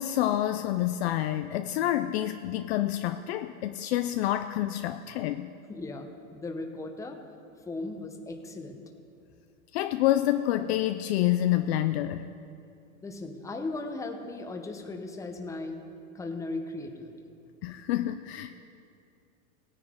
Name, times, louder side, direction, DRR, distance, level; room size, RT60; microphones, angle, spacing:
voice 1, 0.0-5.5 9.7-12.3 17.6-18.5, left 13 dB, 50° left, 9 dB, 0.4 m, -28 dB
voice 2, 5.7-7.2 7.6-8.8 13.0-15.8 16.1-17.1, left 2 dB, 5° left, 4 dB, 0.8 m, -37 dB
16.5 x 9.7 x 3.6 m, 2.5 s
hypercardioid pair, 120°, 44 cm